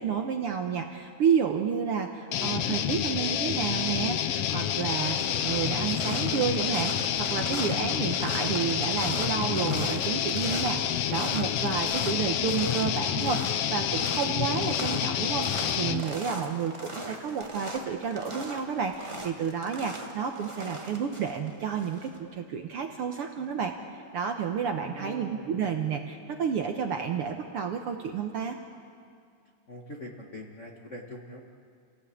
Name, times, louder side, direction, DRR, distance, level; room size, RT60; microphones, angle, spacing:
voice 1, 0.0-5.2 5.4-10.8 11.1-28.6, right 7 dB, 65° right, 4 dB, 1.6 m, -30 dB
sound 1, 2.3-16.0, left 10 dB, 70° left, 1.4 m, -28 dB
sound 2, 3.6-4.0 4.3-22.2, right 1 dB, 15° right, 1.3 m, -40 dB
voice 2, 24.7-25.8 29.7-31.4, left 1 dB, 35° left, -1 dB, 1.3 m, -43 dB
30.0 x 17.5 x 8.5 m, 2.3 s
omnidirectional pair, 3.5 m